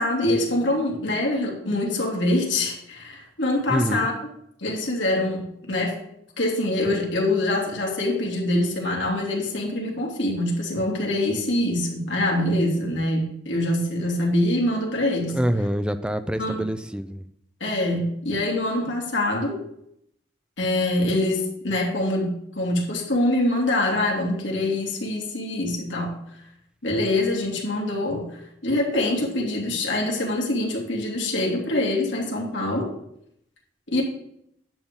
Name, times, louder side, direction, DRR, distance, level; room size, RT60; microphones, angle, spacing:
voice 1, 0.0-4.1 4.6-6.0 6.4-15.4 16.4-16.6 17.6-19.6 20.6-26.2 26.8-32.9 33.9-34.0, left 1 dB, 75° left, -2 dB, 2.8 m, -24 dB
voice 2, 3.7-4.1 15.3-17.2, equal, 5° right, 10 dB, 0.5 m, -25 dB
10.5 x 7.5 x 3.8 m, 0.73 s
head